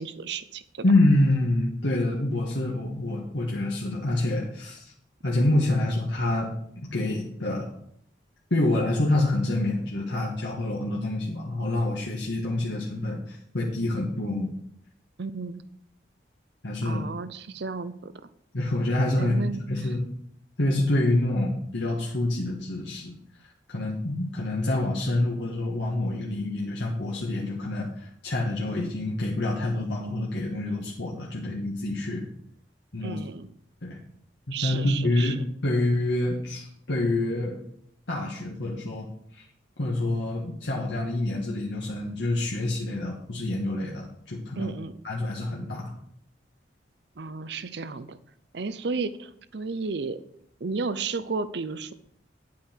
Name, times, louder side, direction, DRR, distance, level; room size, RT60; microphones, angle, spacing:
voice 1, 0.0-0.9 15.2-15.6 16.8-18.1 19.2-19.6 33.0-33.5 34.5-35.3 44.6-45.0 47.2-48.2 48.5-50.2 50.6-51.9, right 4 dB, 65° right, 13 dB, 0.7 m, -33 dB
voice 2, 0.8-4.9 5.2-7.7 8.5-14.5 16.6-17.0 18.5-20.0 20.6-23.1 23.7-32.2 32.9-33.2 33.8-34.0 34.5-37.6 38.1-39.1 39.3-39.4 39.8-44.7 45.0-45.9, left 1 dB, 70° left, -3 dB, 1.5 m, -27 dB
10.0 x 8.5 x 4.5 m, 0.70 s
head